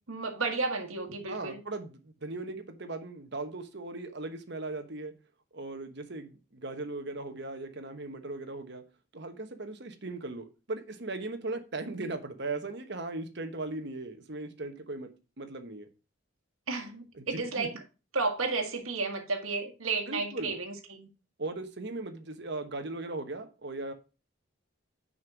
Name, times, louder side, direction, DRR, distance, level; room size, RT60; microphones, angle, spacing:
voice 1, 0.1-1.6 16.7-17.7 18.1-21.1, right 3 dB, 80° right, 1.6 m, -32 dB
voice 2, 1.3-5.1 5.5-8.8 9.1-15.1 15.4-15.9 17.2-17.7 20.1-20.5 21.4-23.9, right 2 dB, 55° right, 1.1 m, -38 dB
6.3 x 5.4 x 6.1 m
head